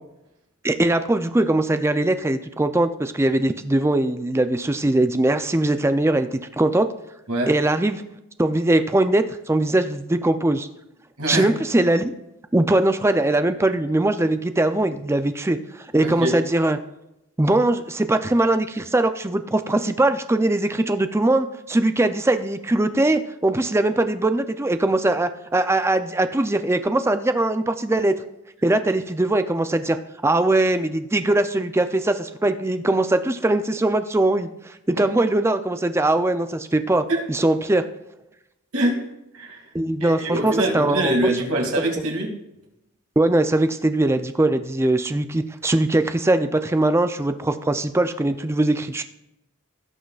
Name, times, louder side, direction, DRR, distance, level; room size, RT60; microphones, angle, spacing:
voice 1, 0.6-6.9 7.5-8.0 8.4-10.7 11.3-12.1 12.5-16.8 17.4-28.1 28.6-30.0 30.2-37.8 39.7-41.2 43.2-49.0, right 2 dB, 10° right, 9 dB, 0.4 m, -21 dB
voice 2, 16.0-16.3 37.1-37.2 38.7-39.0 39.3-39.6 40.0-42.3, right 1 dB, 90° right, 1 dB, 2.3 m, -23 dB
17.0 x 6.3 x 2.4 m, 0.89 s
head